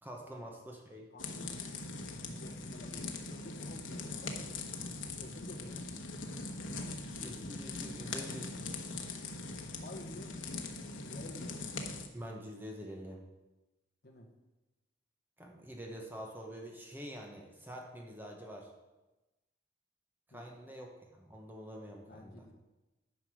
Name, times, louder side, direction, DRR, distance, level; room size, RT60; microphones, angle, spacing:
voice 1, 0.0-1.1 7.2-8.7 12.1-13.2 15.4-18.7 20.3-22.5, equal, 10° right, 0 dB, 1.0 m, -46 dB
voice 2, 1.1-4.8 5.2-5.9 6.6-7.0 9.7-10.3 11.0-11.7 14.0-14.3 20.3-20.7 22.1-22.5, left 1 dB, 50° left, 0 dB, 1.2 m, -52 dB
sound 1, 1.2-12.1, left 3 dB, 85° left, 1.1 m, -41 dB
10.0 x 5.2 x 6.3 m, 1.1 s
head